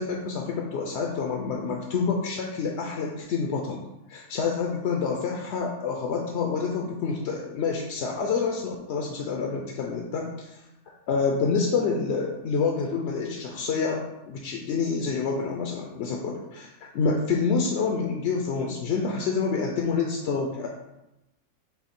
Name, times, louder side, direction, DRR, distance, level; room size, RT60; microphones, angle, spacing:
voice 1, 0.0-3.8 4.1-10.6 11.1-20.7, left 5 dB, 65° left, 0 dB, 0.8 m, -28 dB
5.7 x 2.1 x 4.3 m, 0.94 s
omnidirectional pair, 1.3 m